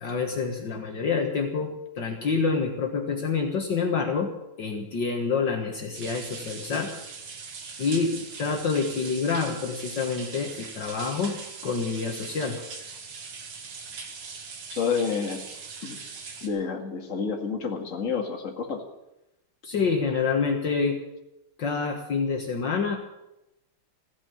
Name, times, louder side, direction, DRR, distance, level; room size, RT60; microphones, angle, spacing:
voice 1, 0.0-4.3 4.6-6.9 7.8-11.4 11.6-12.6 19.7-21.0 21.6-23.0, left 5 dB, 55° left, 2 dB, 2.1 m, -27 dB
sound 1, 5.9-16.5, right 5 dB, 75° right, 2.7 m, -40 dB
voice 2, 14.8-15.4 15.8-16.0 16.4-18.8, left 5 dB, 35° left, 2 dB, 2.2 m, -29 dB
15.5 x 9.9 x 8.8 m, 0.89 s
omnidirectional pair, 2.4 m